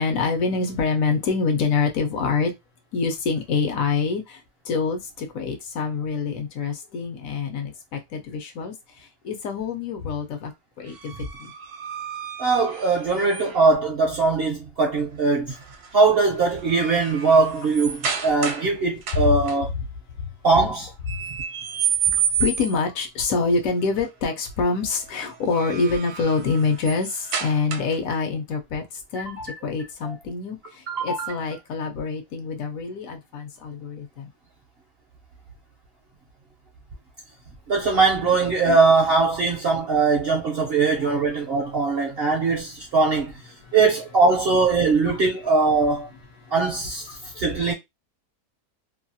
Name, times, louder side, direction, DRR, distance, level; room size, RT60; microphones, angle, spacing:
voice 1, 0.0-2.5 2.9-4.4 4.7-8.7 9.2-10.5 10.8-11.1 11.4-11.5 19.1-19.3 22.1-28.8 29.1-34.3 38.7-38.8 41.0-41.2 45.1-45.2 47.2-47.3 47.7-47.8, left 4 dB, 70° left, 1.0 m, -26 dB
sound 1, 10.9-13.8 15.6-15.9 16.3-18.7 19.0-19.6 21.1-23.0 25.3-28.1, right 8 dB, 80° right, 1.1 m, -30 dB
voice 2, 12.4-15.5 15.9-19.7 20.4-20.9 29.4-29.5 30.0-30.1 30.9-31.3 37.7-43.3 43.7-46.1 46.5-47.1 47.4-47.7, right 4 dB, 55° right, 0.7 m, -21 dB
2.7 x 2.3 x 2.6 m
omnidirectional pair, 1.6 m